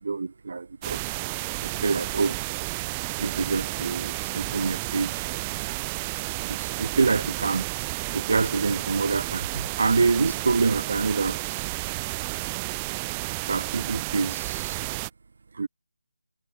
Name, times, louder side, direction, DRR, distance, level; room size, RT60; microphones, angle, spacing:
voice 1, 0.0-1.1 1.6-2.4 3.2-5.3 6.4-7.7 8.1-11.6 13.5-14.8 15.5-15.7, right 4 dB, 50° right, 1.8 m, -26 dB
sound 1, 0.8-15.1, right 25 dB, 15° right, 2.1 m, -32 dB
figure-of-eight pair, 155°, 0 cm